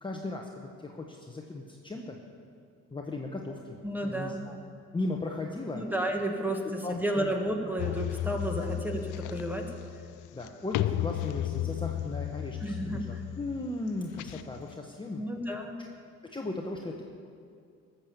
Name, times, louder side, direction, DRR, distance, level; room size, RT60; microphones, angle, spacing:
voice 1, 0.0-2.2 2.9-4.6 4.9-5.9 6.8-7.3 8.6-8.7 10.3-15.3 15.8-15.9 16.3-17.0, left 2 dB, 15° left, 1 dB, 1.0 m, -37 dB
voice 2, 3.8-4.4 5.7-9.8 12.6-13.2 15.1-15.8, right 1 dB, 5° right, 2 dB, 1.6 m, -32 dB
sound 1, 7.8-14.8, left 13 dB, 80° left, 0.5 m, -34 dB
14.0 x 6.9 x 7.3 m, 2.4 s
cardioid pair, 90°, 30 cm